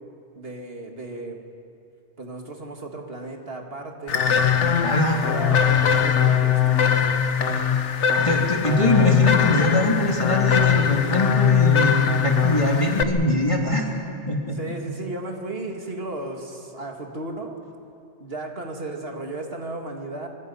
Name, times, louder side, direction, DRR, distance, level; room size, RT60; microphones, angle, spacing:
voice 1, 0.4-1.4 2.2-4.4 5.2-7.4 14.5-17.6 18.2-20.3, right 2 dB, 55° right, 2 dB, 2.3 m, -34 dB
sound 1, 4.1-13.0, left 8 dB, 80° left, 1.3 m, -21 dB
voice 2, 4.8-5.2 8.1-13.9 14.3-14.6, left 1 dB, 25° left, -1 dB, 3.0 m, -22 dB
25.0 x 24.5 x 5.6 m, 2.5 s
omnidirectional pair, 1.2 m